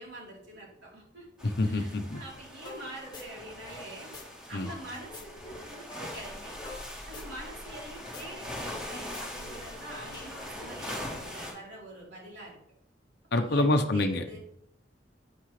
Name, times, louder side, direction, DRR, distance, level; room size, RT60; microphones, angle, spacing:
voice 1, 0.0-1.3 1.6-4.2 4.5-6.6 7.1-12.6 13.3-14.4, right 1 dB, 70° right, -4 dB, 3.8 m, -45 dB
voice 2, 1.4-2.2 4.5-4.7 13.3-14.4, left 2 dB, 60° left, 6 dB, 0.8 m, -26 dB
sound 1, 1.4-11.5, left 1 dB, 5° right, 3.2 m, -42 dB
sound 2, 2.6-2.8 3.1-4.2 4.5-7.9 8.1-8.2 8.5-10.6, left 3 dB, 25° left, 1.5 m, -46 dB
9.6 x 9.2 x 3.3 m, 0.74 s
head